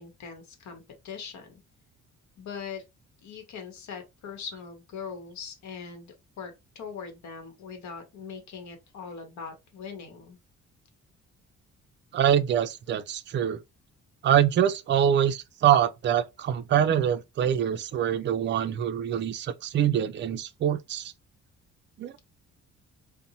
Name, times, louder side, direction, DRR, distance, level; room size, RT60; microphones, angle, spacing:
voice 1, 0.0-1.6 2.4-2.8 3.2-10.4, left 6 dB, 70° left, 1.0 m, -41 dB
voice 2, 12.1-13.6 14.2-21.1 22.0-22.1, right 9 dB, 40° right, 0.4 m, -24 dB
2.6 x 2.1 x 2.8 m
cardioid pair, 90°, 30 cm